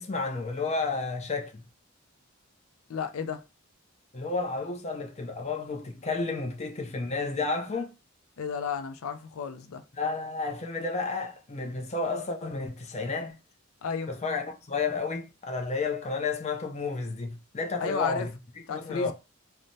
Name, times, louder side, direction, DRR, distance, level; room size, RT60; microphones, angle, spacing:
voice 1, 0.0-1.6 4.1-7.9 9.9-13.4 14.1-18.3 18.7-19.1, left 4 dB, 35° left, 0.5 m, -31 dB
voice 2, 2.9-3.4 8.4-9.8 13.8-14.1 17.8-18.3 18.7-19.1, left 5 dB, 85° left, 0.4 m, -32 dB
3.2 x 2.1 x 2.6 m
head